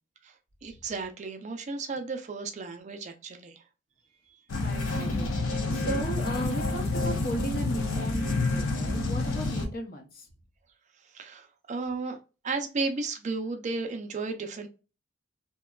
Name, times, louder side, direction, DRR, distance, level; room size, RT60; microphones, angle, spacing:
voice 1, 0.6-3.6 4.3-4.4 11.1-12.2 12.4-14.7, right 3 dB, 35° right, 0.4 m, -34 dB
sound 1, 4.5-9.7, left 2 dB, 90° left, 0.6 m, -28 dB
voice 2, 4.6-10.3, right 1 dB, 50° left, 0.7 m, -36 dB
2.8 x 2.2 x 2.2 m
head